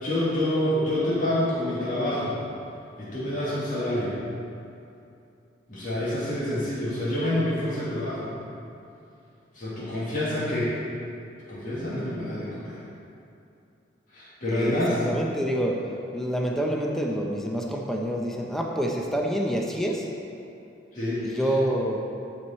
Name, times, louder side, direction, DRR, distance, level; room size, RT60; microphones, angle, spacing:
voice 1, 0.0-2.4 3.0-4.2 5.7-8.3 9.5-10.8 11.5-12.8 14.1-15.0 20.9-21.5, left 1 dB, 45° left, -9 dB, 2.0 m, -27 dB
voice 2, 14.5-20.1 21.2-22.0, equal, ahead, 0 dB, 0.6 m, -27 dB
10.5 x 4.8 x 4.3 m, 2.7 s
head